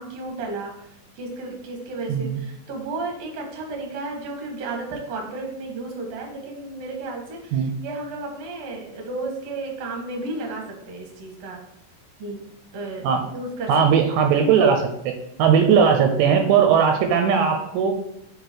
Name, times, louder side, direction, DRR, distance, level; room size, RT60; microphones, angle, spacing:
voice 1, 0.0-11.6 12.2-12.4 12.7-13.1 13.3-13.7, right 2 dB, 60° right, 0 dB, 1.8 m, -33 dB
voice 2, 2.1-2.4 7.5-7.7 13.0-13.2 13.7-15.1 15.4-17.9, right 7 dB, 80° right, 5 dB, 2.8 m, -18 dB
6.8 x 4.2 x 4.5 m, 0.77 s
omnidirectional pair, 5.3 m